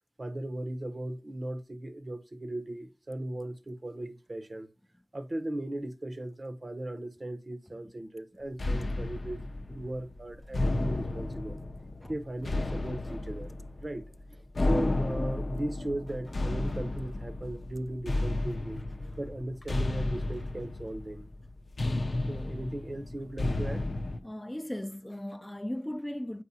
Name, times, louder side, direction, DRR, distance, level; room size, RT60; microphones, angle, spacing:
voice 1, 0.2-4.7 5.1-9.4 9.7-11.6 12.1-13.5 13.8-18.8 19.2-21.3 22.3-23.8, right 1 dB, 55° right, 0.8 m, -37 dB
sound 1, 8.6-24.2, left 2 dB, 80° left, 0.5 m, -33 dB
sound 2, 10.0-10.2 10.4-11.1 12.4-13.4 16.1-17.1 18.7-18.8 19.2-19.3 20.3-20.9 21.8-22.5, left 1 dB, 40° left, 1.0 m, -49 dB
voice 2, 24.2-26.4, left 1 dB, 15° left, 0.4 m, -37 dB
8.1 x 4.7 x 2.7 m
wide cardioid pair, 40°, 0 cm